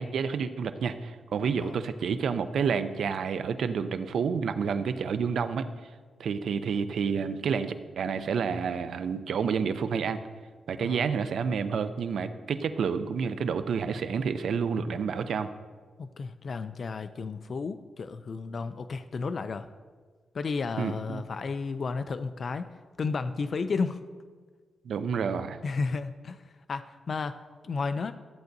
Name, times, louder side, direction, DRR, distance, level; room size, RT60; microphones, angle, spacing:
voice 1, 0.0-5.7 6.2-10.2 10.7-15.5 20.8-21.2 24.8-25.6, right 6 dB, 75° right, 11 dB, 0.5 m, -29 dB
voice 2, 16.0-19.7 20.3-22.7 23.0-24.0 25.6-26.4 26.7-28.1, left 4 dB, 50° left, 10 dB, 0.4 m, -32 dB
13.5 x 7.9 x 2.6 m, 1.5 s
cardioid pair, 110°, 0 cm